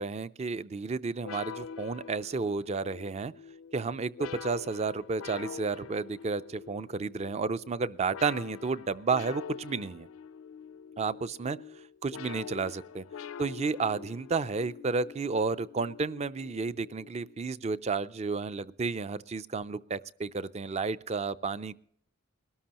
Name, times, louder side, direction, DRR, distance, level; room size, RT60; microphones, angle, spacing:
voice 1, 0.0-3.3 3.7-10.1 11.0-11.6 12.0-13.0 13.4-21.8, right 4 dB, 30° right, 16 dB, 0.4 m, -32 dB
sound 1, 1.2-17.4, left 7 dB, 75° left, 0.4 m, -45 dB
21.0 x 13.0 x 2.9 m, 0.65 s
head